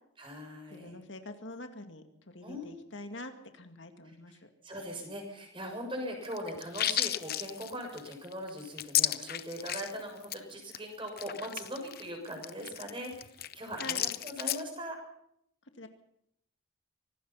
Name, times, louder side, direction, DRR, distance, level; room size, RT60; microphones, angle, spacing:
voice 1, 0.2-1.0 2.4-2.8 4.6-13.3 13.5-15.0, equal, 25° right, 3 dB, 6.6 m, -40 dB
voice 2, 0.7-4.5 13.8-14.0 15.7-15.9, left 2 dB, 60° left, 7 dB, 2.1 m, -45 dB
sound 1, 6.2-10.0 10.2-10.4 10.7-10.8 11.1-14.6, left 12 dB, 45° left, 0.8 m, -33 dB
25.0 x 19.0 x 5.7 m, 0.74 s
head